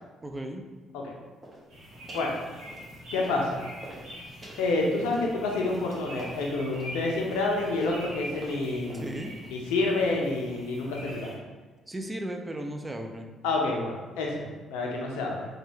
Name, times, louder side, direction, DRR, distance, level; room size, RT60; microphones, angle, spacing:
voice 1, 0.2-0.6 8.9-9.3 11.9-13.3, right 1 dB, 20° right, 4 dB, 0.4 m, -36 dB
sound 1, 1.4-1.7 2.1-2.3 2.6-3.5 3.8-9.3, right 1 dB, 35° right, 1.0 m, -45 dB
sound 2, 1.7-11.3, equal, 70° right, 1.2 m, -44 dB
voice 2, 3.1-3.6 4.6-9.2 9.5-11.3 13.4-15.5, left 2 dB, 80° left, 0 dB, 0.5 m, -28 dB
3.0 x 2.2 x 3.1 m, 1.3 s
hypercardioid pair, 50°, 0 cm